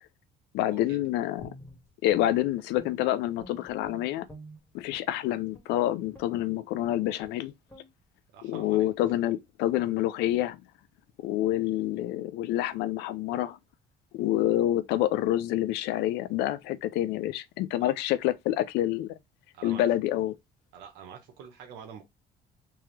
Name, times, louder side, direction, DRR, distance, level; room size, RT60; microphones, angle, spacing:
voice 1, 0.5-1.5 2.0-4.3 4.7-7.5 8.4-10.6 11.2-13.6 14.1-19.2 19.6-20.3, left 13 dB, 90° left, 0.4 m, -27 dB
Guitar, 1.4-3.1 3.4-5.1 5.5-5.7 6.1-6.4 6.8-6.9 7.2-7.4 7.7-7.9, right 1 dB, 15° left, 1.7 m, -49 dB
voice 2, 8.3-8.9 17.8-17.9 19.5-19.8 20.7-22.1, right 7 dB, 90° right, 0.9 m, -46 dB
3.5 x 2.9 x 3.1 m
cardioid pair, 110°, 17 cm